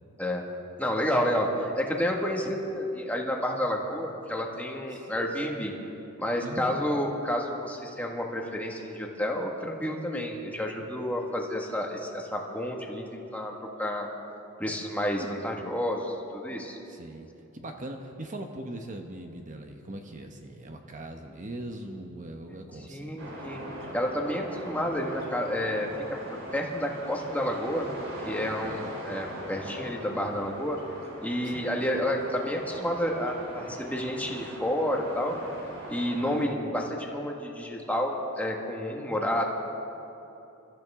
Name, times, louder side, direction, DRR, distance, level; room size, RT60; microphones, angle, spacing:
voice 1, 0.8-5.7 6.2-13.5 13.8-14.1 14.6-16.8 22.9-23.6 23.9-25.9 26.5-27.9 28.2-30.8 31.2-35.3 35.9-39.4, equal, 5° left, 0 dB, 1.7 m, -30 dB
voice 2, 6.4-6.9 15.2-15.3 16.9-23.2 28.6-28.9 31.4-31.6, right 1 dB, 35° right, 4 dB, 1.0 m, -41 dB
sound 1, 23.2-36.5, right 1 dB, 65° right, 3.5 m, -41 dB
28.5 x 13.5 x 3.7 m, 3.0 s
head